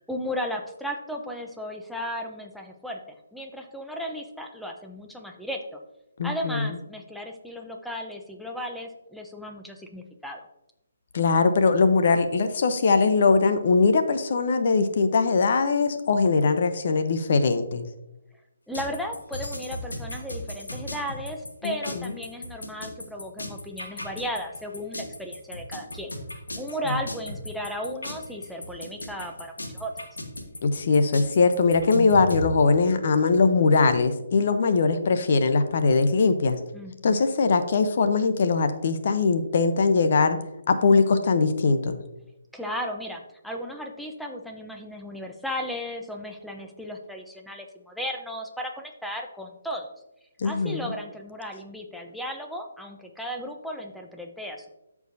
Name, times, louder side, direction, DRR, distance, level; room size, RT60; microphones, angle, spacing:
voice 1, 0.1-5.8 6.2-10.5 18.7-26.1 26.6-29.9 36.7-37.2 42.5-49.9 50.4-54.7, equal, ahead, 2 dB, 0.8 m, -35 dB
voice 2, 6.2-6.8 11.1-17.8 21.6-22.1 30.6-36.6 37.0-40.4 40.7-42.0 50.4-50.9, left 4 dB, 55° left, 9 dB, 0.8 m, -21 dB
sound 1, 18.7-32.4, left 1 dB, 85° left, 1.5 m, -35 dB
13.5 x 4.8 x 2.7 m, 0.91 s
figure-of-eight pair, 140°, 0 cm